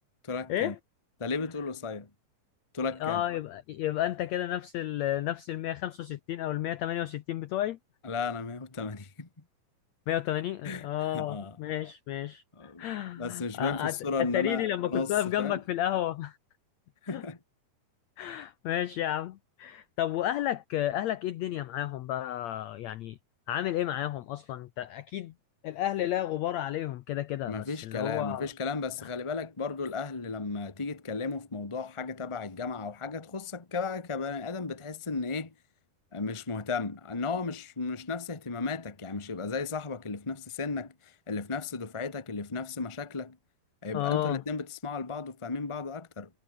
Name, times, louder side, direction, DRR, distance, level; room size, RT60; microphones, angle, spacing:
voice 1, 0.2-0.7 1.2-2.1 2.7-3.2 8.0-9.3 10.6-11.6 12.5-12.8 13.2-15.1 15.4-15.6 17.0-17.4 27.4-35.5 36.1-43.4 43.8-46.3, left 4 dB, 20° left, 0.8 m, -34 dB
voice 2, 3.0-7.8 10.1-12.4 12.8-16.4 17.1-17.2 18.2-23.2 23.5-25.3 25.6-28.5 43.9-44.4, left 12 dB, 80° left, 1.6 m, -32 dB
omnidirectional pair, 4.2 m